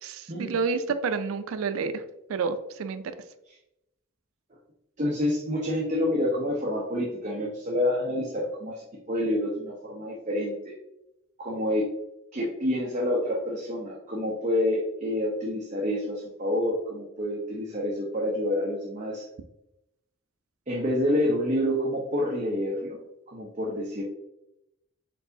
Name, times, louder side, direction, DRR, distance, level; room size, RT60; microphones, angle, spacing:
voice 1, 0.0-2.0 2.3-3.0, right 5 dB, 80° right, 11 dB, 0.4 m, -29 dB
voice 2, 5.0-10.7 11.4-11.9 12.3-19.3 20.7-23.0 23.3-24.0, left 1 dB, 35° right, -3 dB, 0.7 m, -28 dB
4.5 x 3.9 x 2.6 m, 0.88 s
head